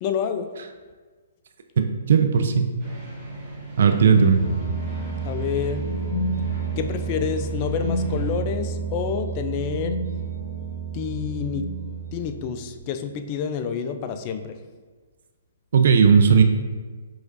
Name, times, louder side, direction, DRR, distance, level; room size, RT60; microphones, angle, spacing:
voice 1, 0.0-0.5 5.2-5.9 6.8-10.0 10.9-11.7 12.1-14.6, left 7 dB, 35° left, 8 dB, 0.3 m, -28 dB
voice 2, 2.1-2.7 3.8-4.4 15.7-16.4, right 6 dB, 65° right, 6 dB, 0.3 m, -16 dB
sound 1, 2.8-8.3, right 2 dB, 20° right, 1.4 m, -40 dB
sound 2, 3.9-12.7, right 3 dB, 90° left, 0.6 m, -29 dB
4.8 x 3.1 x 2.6 m, 1.4 s
hypercardioid pair, 135°, 0 cm